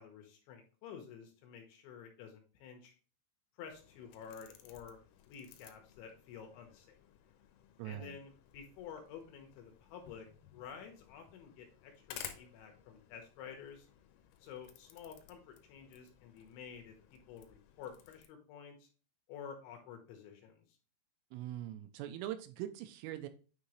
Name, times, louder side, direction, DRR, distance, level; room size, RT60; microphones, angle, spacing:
voice 1, 0.0-2.9 3.6-5.0 5.3-7.0 7.8-10.3 10.5-13.9 14.4-18.9 19.3-20.6, left 7 dB, 75° left, 3 dB, 3.1 m, -51 dB
sound 1, 3.7-18.3, left 10 dB, 90° left, 3.3 m, -56 dB
voice 2, 7.8-8.2 21.3-23.3, right 12 dB, 85° right, 9 dB, 3.0 m, -42 dB
9.4 x 3.7 x 3.1 m, 0.37 s
omnidirectional pair, 5.9 m